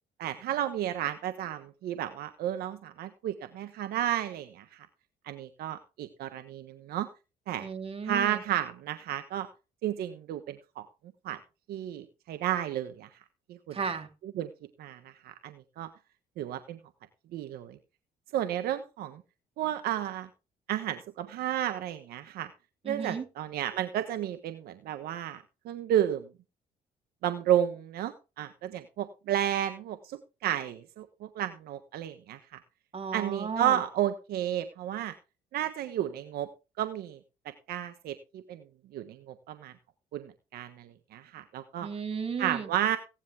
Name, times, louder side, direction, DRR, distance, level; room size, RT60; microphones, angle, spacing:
voice 1, 0.2-4.9 5.2-7.1 7.5-7.7 8.0-9.5 9.8-10.9 11.2-11.4 11.7-13.1 13.5-13.8 14.2-14.5 14.8-15.9 16.4-16.8 17.3-17.8 18.3-19.2 19.6-20.3 20.7-22.5 22.8-26.3 27.2-32.6 33.1-35.1 35.5-36.5 36.8-37.2 37.7-38.6 38.9-39.7 40.1-41.9 42.4-43.0, right 11 dB, 80° right, 9 dB, 1.3 m, -32 dB
voice 2, 7.6-8.4 13.7-14.1 22.8-23.3 32.9-33.8 41.8-42.7, right 5 dB, 40° right, 5 dB, 3.5 m, -34 dB
16.5 x 10.5 x 3.6 m, 0.30 s
cardioid pair, 90°, 16 cm